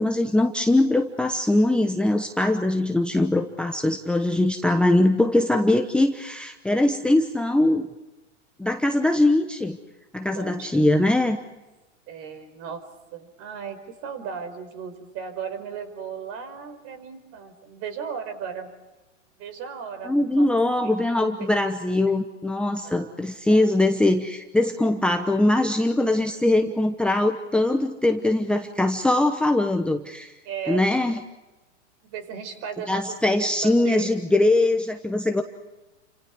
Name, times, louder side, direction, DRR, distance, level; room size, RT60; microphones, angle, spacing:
voice 1, 0.0-7.9 8.6-9.8 10.1-11.4 20.1-30.3 30.7-31.2 32.9-35.4, left 1 dB, 5° left, 5 dB, 1.0 m, -22 dB
voice 2, 10.3-11.1 12.1-12.8 13.1-18.7 19.4-20.5 20.8-21.1 21.4-21.5 22.8-23.2 30.4-30.9 32.1-34.1, right 6 dB, 40° right, 9 dB, 5.0 m, -36 dB
30.0 x 26.5 x 4.7 m, 1.1 s
hypercardioid pair, 125°, 37 cm